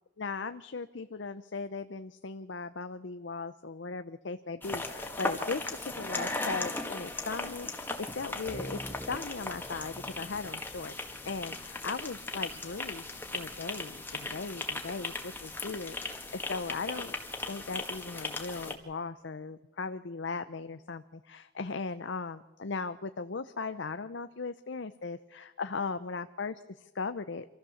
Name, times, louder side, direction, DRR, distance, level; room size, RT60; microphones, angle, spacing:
voice 1, 0.2-10.9 11.3-17.2 17.5-27.5, left 4 dB, 65° left, 10 dB, 0.7 m, -38 dB
sound 1, 4.6-18.7, left 2 dB, 10° left, 1.7 m, -38 dB
sound 2, 8.5-12.0, equal, 5° right, 0.6 m, -46 dB
25.5 x 15.0 x 7.2 m, 1.1 s
head